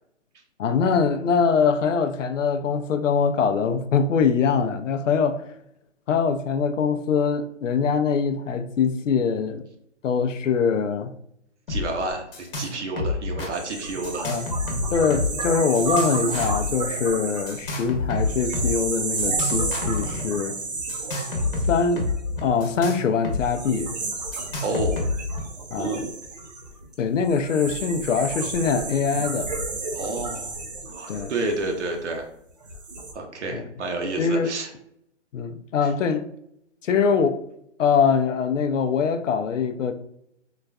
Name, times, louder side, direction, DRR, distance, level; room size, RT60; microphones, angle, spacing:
voice 1, 0.6-5.5 6.1-9.6 10.0-11.1 14.2-14.5 14.9-20.6 21.7-22.1 22.4-24.0 25.7-26.0 27.0-29.5 31.1-31.3 33.5-33.6 34.2-34.5 35.3-36.3 36.8-37.4 37.8-39.9, left 6 dB, 85° left, 0.5 m, -23 dB
sound 1, 11.7-11.8 12.1-12.7 13.0-13.5 14.0-15.4 15.7-16.7 17.5-18.7 19.2-20.2 20.9-23.4 23.7-23.8 24.3-25.4, left 3 dB, 45° left, 0.9 m, -28 dB
voice 2, 11.7-14.3 24.6-25.1 25.8-26.1 29.9-30.5 30.9-32.3 33.1-34.7 35.8-35.9, right 2 dB, 65° right, 0.7 m, -30 dB
sound 2, 13.5-22.7 23.4-32.1 32.6-33.1, right 3 dB, 35° right, 0.4 m, -32 dB
3.8 x 2.4 x 2.2 m
hypercardioid pair, 155°, 37 cm